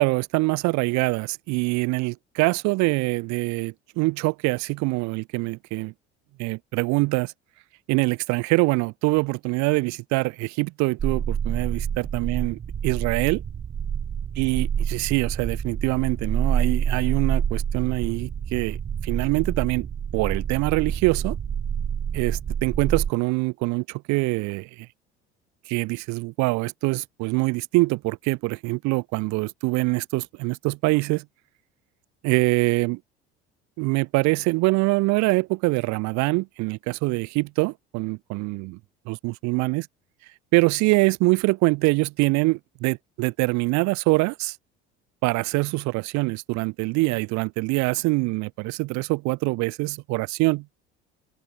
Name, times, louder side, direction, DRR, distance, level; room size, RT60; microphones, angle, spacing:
voice 1, 0.0-5.9 6.4-7.3 7.9-13.4 14.4-18.8 19.0-19.9 20.1-21.4 22.1-24.9 25.7-31.2 32.2-33.0 33.8-38.8 39.1-39.9 40.5-44.6 45.2-50.7, right 25 dB, 55° right, 0.7 m, -24 dB
sound 1, 11.0-23.1, right 8 dB, 20° right, 0.5 m, -28 dB
figure-of-eight pair, 60°, 34 cm